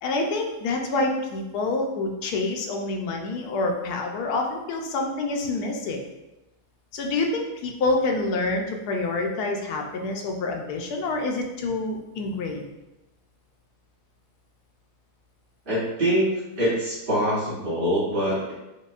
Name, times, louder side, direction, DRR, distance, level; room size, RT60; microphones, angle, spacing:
voice 1, 0.0-6.0 6.9-12.7, left 2 dB, 80° left, 2 dB, 1.1 m, -27 dB
voice 2, 15.7-18.5, equal, 40° right, -10 dB, 0.9 m, -24 dB
5.2 x 2.1 x 2.4 m, 0.98 s
omnidirectional pair, 1.7 m